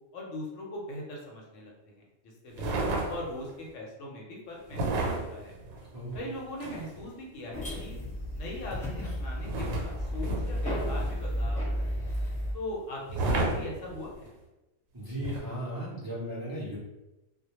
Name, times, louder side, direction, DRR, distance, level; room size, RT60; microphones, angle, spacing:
voice 1, 0.1-5.5 6.1-8.0 8.3-12.0 12.5-14.3, left 1 dB, 70° left, -2 dB, 0.9 m, -41 dB
sound 1, 2.5-3.5 4.7-7.1 9.4-11.4 13.1-14.3 15.2-15.4, right 2 dB, 85° right, 1.0 m, -32 dB
sound 2, 7.5-12.5, equal, 5° left, 0.7 m, -32 dB
voice 2, 14.9-16.8, equal, 35° right, -9 dB, 0.3 m, -36 dB
2.2 x 2.1 x 2.9 m, 1.0 s
omnidirectional pair, 1.4 m